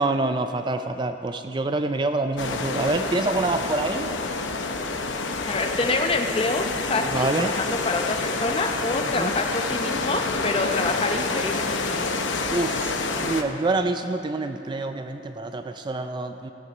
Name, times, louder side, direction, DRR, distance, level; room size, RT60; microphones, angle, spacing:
voice 1, 0.0-4.1 7.1-7.5 9.0-9.3 12.5-16.5, right 2 dB, 25° right, 8 dB, 0.3 m, -26 dB
sound 1, 2.4-13.4, left 3 dB, 80° left, 0.8 m, -28 dB
voice 2, 5.4-12.2, left 2 dB, 30° left, 5 dB, 0.6 m, -27 dB
16.0 x 8.1 x 5.9 m, 3.0 s
head